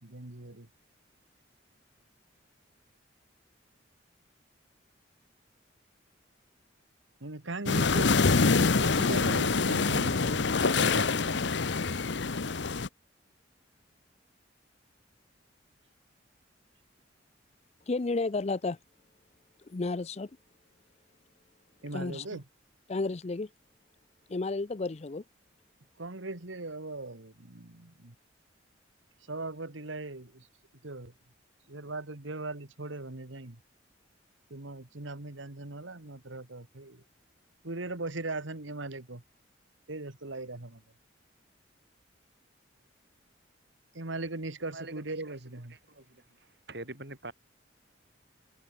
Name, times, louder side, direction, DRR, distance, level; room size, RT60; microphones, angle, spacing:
voice 1, 0.0-0.7 7.2-11.6 21.8-22.4 26.0-28.1 29.2-30.5 30.8-31.1 31.7-33.6 34.5-37.0 37.6-39.2 39.9-40.8 43.9-45.8, right 2 dB, 90° right, 2.1 m, -39 dB
sound 1, 7.7-12.9, left 4 dB, 65° left, 0.9 m, -25 dB
voice 2, 17.9-18.8 19.7-20.3 21.9-22.4 22.9-23.5 24.3-25.2, left 3 dB, 35° left, 0.5 m, -32 dB
voice 3, 44.7-45.5 46.0-46.2 46.7-47.3, right 2 dB, 60° right, 6.7 m, -44 dB
head